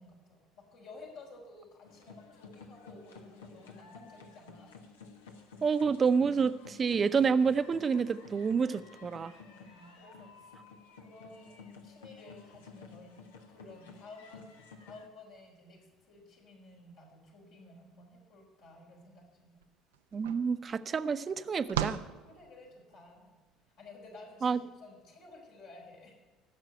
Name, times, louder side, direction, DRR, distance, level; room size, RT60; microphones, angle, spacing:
voice 1, 0.0-4.8 9.4-10.5 10.9-13.2 13.5-14.5 14.8-19.6 22.3-23.4 23.8-26.1, left 2 dB, 70° left, -3 dB, 4.6 m, -53 dB
sound 1, 1.8-15.1, left 4 dB, 90° left, 1.3 m, -53 dB
voice 2, 5.6-9.3 20.1-22.0 24.4-24.6, right 5 dB, 40° right, 12 dB, 0.7 m, -28 dB
sound 2, 19.6-19.7 19.9-23.0, right 10 dB, 85° right, 0.5 m, -38 dB
16.0 x 6.7 x 9.0 m, 1.3 s
hypercardioid pair, 60°, 0 cm